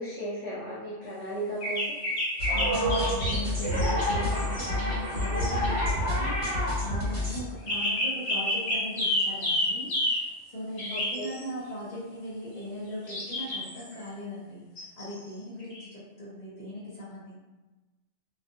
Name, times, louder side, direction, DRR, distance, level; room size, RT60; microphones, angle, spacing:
voice 1, 0.0-2.0 10.9-11.3, right 1 dB, 15° right, -9 dB, 0.4 m, -35 dB
sound 1, 1.6-5.8 7.7-10.2 10.8-11.4 13.1-13.9 14.8-15.1 15.6-15.8, left 1 dB, 65° left, 1.2 m, -29 dB
sound 2, 2.4-7.4, equal, 45° right, 1.1 m, -28 dB
voice 2, 2.5-17.4, left 1 dB, 45° left, -8 dB, 0.7 m, -39 dB
2.4 x 2.4 x 2.6 m, 1.2 s
omnidirectional pair, 1.2 m